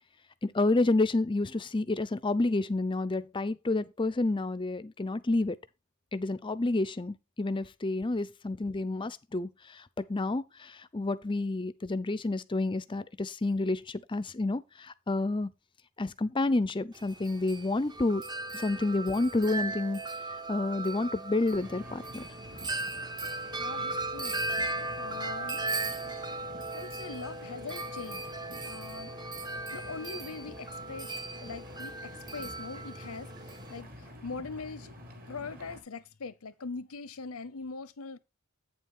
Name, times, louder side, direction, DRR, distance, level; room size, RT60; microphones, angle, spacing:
voice 1, 0.4-5.6 6.1-9.8 10.1-15.5 16.0-18.2 18.5-20.0 20.5-22.2, left 2 dB, 25° left, 0.5 m, -29 dB
Wind chime, 16.9-33.8, right 2 dB, 20° right, 0.7 m, -37 dB
Engine, 21.5-35.8, left 1 dB, 45° right, 2.3 m, -48 dB
voice 2, 23.6-24.4 25.0-25.6 26.7-28.3 28.6-29.1 29.7-31.1 31.4-38.2, left 4 dB, 85° left, 0.8 m, -42 dB
8.6 x 7.4 x 3.7 m
head